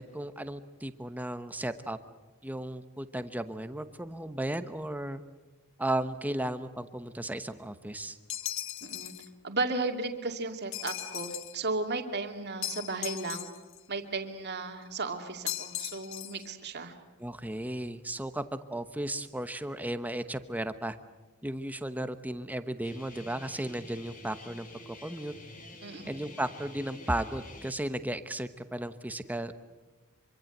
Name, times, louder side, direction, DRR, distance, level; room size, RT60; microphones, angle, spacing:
voice 1, 0.0-2.0 2.4-5.2 5.8-8.2 17.2-21.0 21.4-24.7 25.0-25.3 26.0-29.6, right 1 dB, 5° right, 11 dB, 1.0 m, -35 dB
sound 1, 8.3-9.3 10.7-11.6 12.6-13.8 15.5-16.5, left 13 dB, 60° left, 1.1 m, -37 dB
voice 2, 8.8-9.1 9.4-13.5 13.9-16.9 25.8-26.1, right 3 dB, 50° right, 5 dB, 2.4 m, -34 dB
Guitar, 22.8-27.7, left 1 dB, 35° left, 3.5 m, -48 dB
25.5 x 24.5 x 8.0 m, 1.2 s
head